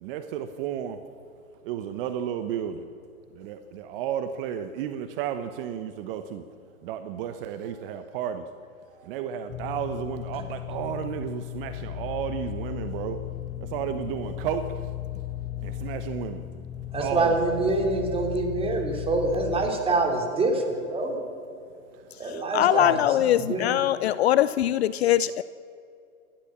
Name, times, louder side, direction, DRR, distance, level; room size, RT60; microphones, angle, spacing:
voice 1, 0.0-1.0 1.6-2.9 3.3-6.4 6.8-8.5 8.9-13.2 13.6-14.9 15.6-16.4 16.9-17.5 22.2-22.4, right 9 dB, 40° right, 9 dB, 1.1 m, -33 dB
sound 1, 9.5-19.7, left 14 dB, 15° left, 1.1 m, -36 dB
voice 2, 16.9-21.2 22.2-23.7, right 3 dB, 15° right, 2 dB, 3.3 m, -26 dB
voice 3, 22.5-25.4, left 12 dB, 45° left, 17 dB, 0.6 m, -22 dB
29.0 x 12.0 x 7.4 m, 2.5 s
hypercardioid pair, 130°, 43 cm